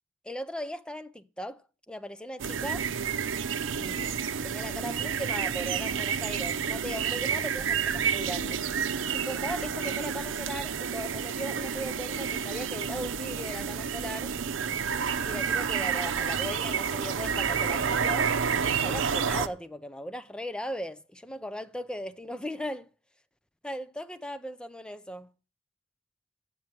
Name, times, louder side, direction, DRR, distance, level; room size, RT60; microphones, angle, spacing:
voice 1, 0.2-2.9 3.8-4.1 4.4-8.6 9.1-14.4 15.2-22.9 23.6-25.3, equal, 5° left, 0.5 m, -38 dB
sound 1, 2.4-19.5, right 7 dB, 85° right, 0.6 m, -30 dB
9.0 x 7.4 x 7.5 m
head